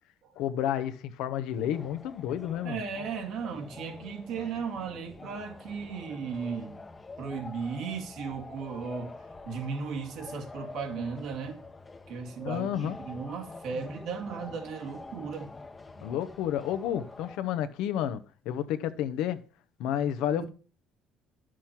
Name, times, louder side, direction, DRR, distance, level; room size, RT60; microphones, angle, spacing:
voice 1, 0.4-2.8 12.4-13.0 16.0-19.4 19.8-20.5, left 10 dB, 80° left, 0.9 m, -31 dB
sound 1, 1.5-17.4, left 3 dB, 25° left, 0.9 m, -46 dB
voice 2, 2.6-6.8 7.2-9.2 9.5-11.6 12.1-15.5 16.0-16.1 20.3-20.5, right 5 dB, 75° right, 2.4 m, -36 dB
10.5 x 6.3 x 5.9 m
supercardioid pair, 85°, 0 cm